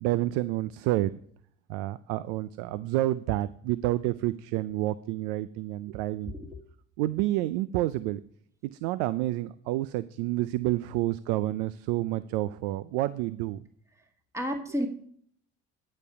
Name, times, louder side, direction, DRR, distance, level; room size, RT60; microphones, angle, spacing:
voice 1, 0.0-1.1 1.7-6.3 7.0-8.2 8.8-13.6, right 16 dB, 85° right, 16 dB, 0.5 m, -29 dB
voice 2, 6.2-6.6 14.3-14.9, equal, 10° right, 4 dB, 1.6 m, -31 dB
11.0 x 5.3 x 5.7 m, 0.63 s
supercardioid pair, 85°, 33 cm